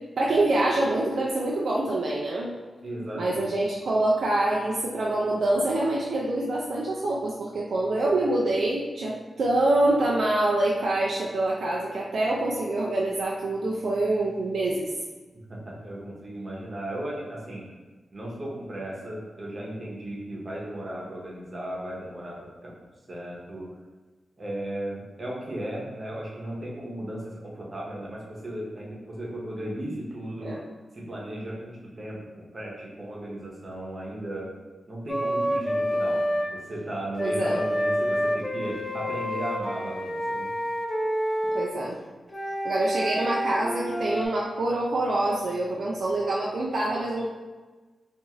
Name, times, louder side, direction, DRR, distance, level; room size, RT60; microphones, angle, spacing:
voice 1, 0.2-2.5 3.1-14.9 30.4-30.6 37.2-37.6 41.5-42.0 42.6-47.3, right 2 dB, 75° right, -3 dB, 0.3 m, -25 dB
voice 2, 2.8-3.5 15.5-17.6 18.1-22.4 22.6-22.7 23.1-23.7 24.4-30.5 30.9-34.5 34.9-40.5, right 1 dB, 45° right, -4 dB, 0.8 m, -36 dB
Wind instrument woodwind instrument, 35.1-36.5 37.1-41.7 42.3-44.3, equal, 25° left, 0.3 m, -28 dB
2.5 x 2.4 x 3.0 m, 1.3 s
cardioid pair, 65°, 0 cm